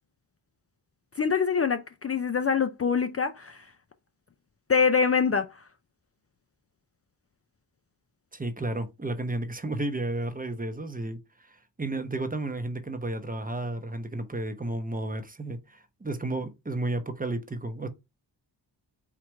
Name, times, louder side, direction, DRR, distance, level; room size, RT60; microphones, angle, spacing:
voice 1, 1.2-3.6 4.7-5.5, left 5 dB, 35° left, 0.4 m, -24 dB
voice 2, 8.3-17.9, right 2 dB, 20° right, 0.7 m, -32 dB
4.7 x 2.4 x 4.3 m
wide cardioid pair, 90°, 43 cm